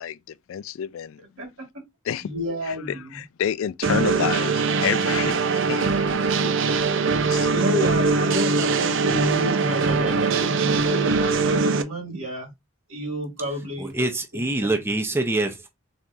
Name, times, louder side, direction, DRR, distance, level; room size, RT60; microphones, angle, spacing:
voice 1, 0.0-1.2 2.0-2.3 2.7-6.6 7.0-7.8, left 9 dB, 70° left, 0.3 m, -30 dB
voice 2, 2.2-3.2 7.2-12.5 12.9-14.0 14.3-14.7, equal, 80° right, 2.4 m, -30 dB
sound 1, 3.8-11.8, right 4 dB, 65° right, 0.5 m, -22 dB
voice 3, 13.8-15.7, right 2 dB, 10° right, 0.6 m, -25 dB
4.2 x 3.5 x 2.5 m
head